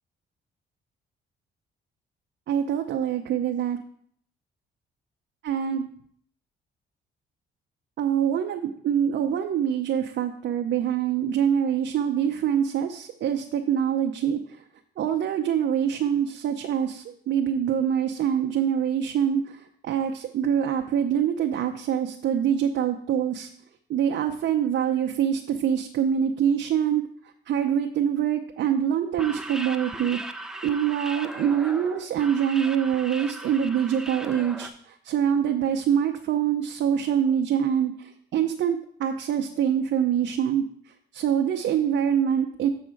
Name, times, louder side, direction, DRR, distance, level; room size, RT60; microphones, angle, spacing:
voice 1, 2.5-3.8 5.4-5.9 8.0-14.6 15.0-23.5 23.9-27.0 27.5-30.2 30.6-40.6 41.1-42.7, right 9 dB, 65° right, 3 dB, 0.7 m, -25 dB
sound 1, 29.1-34.7, right 1 dB, 5° right, 0.6 m, -38 dB
7.1 x 4.2 x 6.4 m, 0.64 s
cardioid pair, 90°, 20 cm